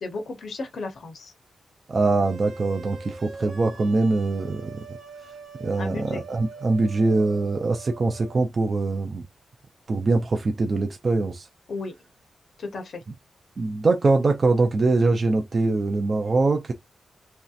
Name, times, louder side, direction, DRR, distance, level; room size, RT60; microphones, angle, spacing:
voice 1, 0.0-1.3 5.8-6.2 11.7-11.9 12.6-13.0, left 3 dB, 55° left, 0.6 m, -34 dB
voice 2, 1.9-4.8 5.6-9.2 9.9-11.5 13.6-16.7, right 3 dB, 35° right, 0.4 m, -23 dB
sound 1, 2.2-8.4, right 4 dB, 60° right, 0.9 m, -43 dB
3.0 x 2.7 x 2.3 m
wide cardioid pair, 180°, 0 cm